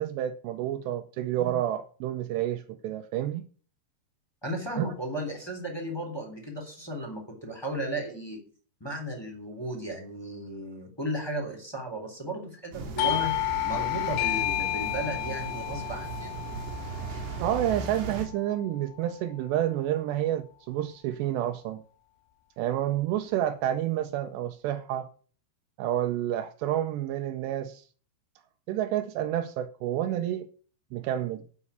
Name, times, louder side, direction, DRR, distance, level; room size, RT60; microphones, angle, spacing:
voice 1, 0.0-3.4 4.8-4.9 17.4-21.8 22.6-25.1 25.8-27.8 28.7-30.5 30.9-31.4, right 12 dB, 80° right, 2.8 m, -29 dB
voice 2, 4.4-8.4 8.8-13.3 13.6-16.4, right 1 dB, 5° left, 2.7 m, -35 dB
sound 1, 12.7-18.3, right 4 dB, 65° right, 4.3 m, -37 dB
Doorbell, 13.0-18.3, left 16 dB, 80° left, 2.8 m, -31 dB
11.5 x 5.4 x 8.5 m
omnidirectional pair, 5.1 m